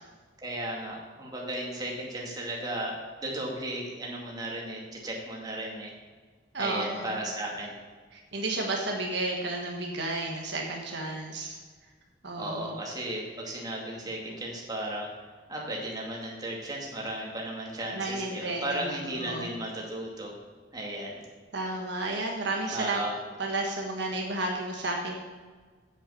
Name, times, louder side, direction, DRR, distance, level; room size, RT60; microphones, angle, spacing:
voice 1, 0.4-5.9 6.6-7.7 12.3-15.1 15.5-20.3 20.7-21.2 22.7-23.1, right 1 dB, 20° right, -3 dB, 2.3 m, -35 dB
voice 2, 6.5-7.2 8.1-11.6 12.2-12.7 17.9-19.5 21.5-23.0 23.4-25.1, right 2 dB, 65° right, 0 dB, 1.5 m, -32 dB
8.3 x 7.8 x 6.9 m, 1.5 s
head